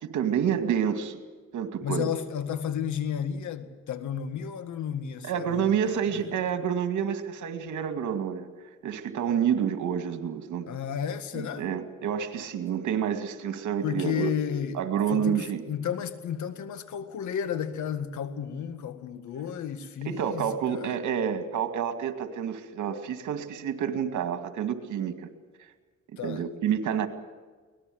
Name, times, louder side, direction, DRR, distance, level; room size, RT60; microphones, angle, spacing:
voice 1, 0.0-1.2 1.5-2.1 5.2-8.5 8.8-10.7 11.4-14.3 14.7-15.6 20.1-25.3 26.2-27.1, right 8 dB, 75° right, 2.3 m, -28 dB
voice 2, 1.8-6.3 10.7-11.7 13.8-14.8 15.1-21.0 26.2-26.4, left 8 dB, 70° left, 2.0 m, -33 dB
23.5 x 19.0 x 7.9 m
cardioid pair, 90°, 30 cm